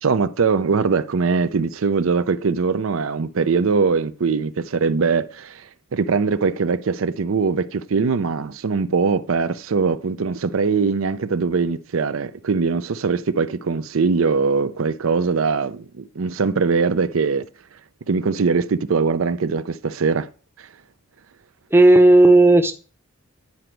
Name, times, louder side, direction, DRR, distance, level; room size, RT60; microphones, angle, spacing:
voice 1, 0.0-17.4 18.1-20.3, right 4 dB, 85° right, 0.5 m, -21 dB
voice 2, 21.7-22.7, right 2 dB, 10° right, 0.6 m, -11 dB
9.6 x 5.0 x 4.5 m
head